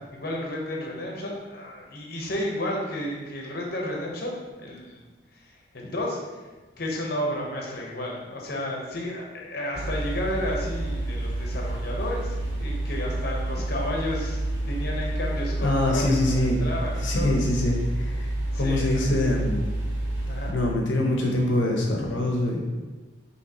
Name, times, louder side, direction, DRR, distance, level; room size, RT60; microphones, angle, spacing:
voice 1, 0.1-5.0 5.7-6.2 6.8-16.2 16.6-17.3 18.5-19.1 20.3-20.5, left 1 dB, 55° left, -1 dB, 1.0 m, -32 dB
sound 1, 9.7-20.5, right 1 dB, 75° right, 0.9 m, -29 dB
voice 2, 15.6-16.6 17.0-18.3 18.5-19.7 20.5-22.7, left 1 dB, 80° left, 0 dB, 0.8 m, -24 dB
5.7 x 3.1 x 2.9 m, 1.3 s
head